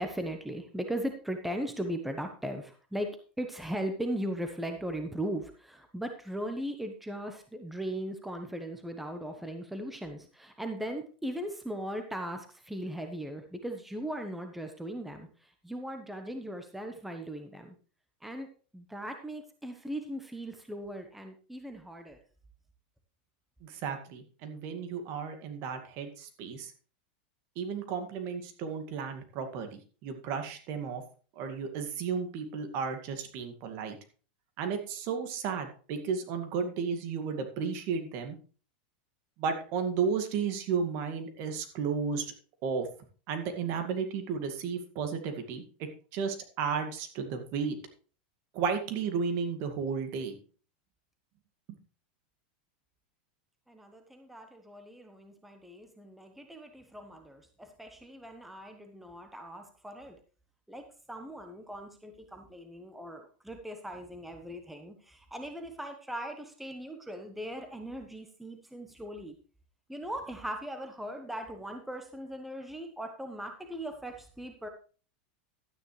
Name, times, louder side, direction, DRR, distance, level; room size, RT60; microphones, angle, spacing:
voice 1, 0.0-3.1 3.4-17.8 18.2-18.5 18.7-22.2 53.7-60.2 60.7-69.4 69.9-74.7, right 1 dB, 5° right, 5 dB, 1.1 m, -38 dB
voice 2, 23.6-26.7 27.6-31.0 31.4-34.0 34.6-38.4 39.4-42.3 42.6-42.9 43.3-47.7 48.5-50.4, right 6 dB, 50° right, 6 dB, 2.1 m, -33 dB
12.0 x 9.6 x 3.3 m, 0.38 s
supercardioid pair, 135°, 5 cm